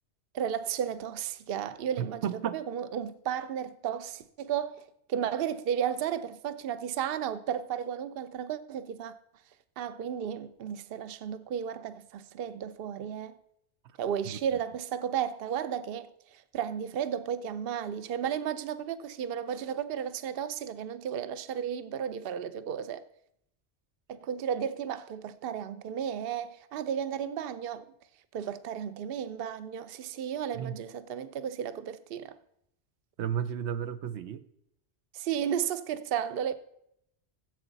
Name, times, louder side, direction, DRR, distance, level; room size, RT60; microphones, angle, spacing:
voice 1, 0.3-2.2 2.5-9.1 9.8-13.4 14.0-23.0 24.1-27.9 28.3-32.4 35.1-36.5, right 8 dB, 65° right, 0.8 m, -33 dB
voice 2, 2.0-2.6 14.3-14.4 30.5-30.8 33.2-34.4, right 9 dB, 85° right, 1.0 m, -33 dB
15.0 x 8.0 x 4.0 m
omnidirectional pair, 1.1 m